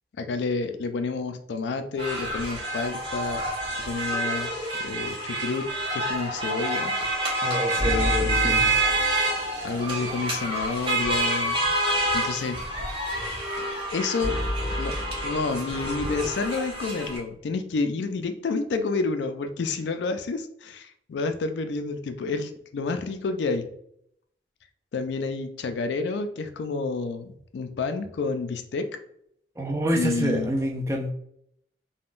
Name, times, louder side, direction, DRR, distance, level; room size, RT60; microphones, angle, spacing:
voice 1, 0.2-3.4 3.8-5.7 5.9-6.9 7.8-8.7 9.6-11.7 12.1-12.6 13.9-15.0 15.2-23.7 24.9-28.9 29.9-30.5, left 4 dB, 75° left, 8 dB, 0.4 m, -29 dB
sound 1, 2.0-17.2, right 1 dB, 30° right, 1.2 m, -28 dB
voice 2, 7.4-8.7 29.6-31.1, right 1 dB, 15° right, 1 dB, 0.4 m, -27 dB
sound 2, 7.8-9.9 14.2-17.4, left 1 dB, 70° right, 0.9 m, -32 dB
3.5 x 2.2 x 2.5 m, 0.71 s
head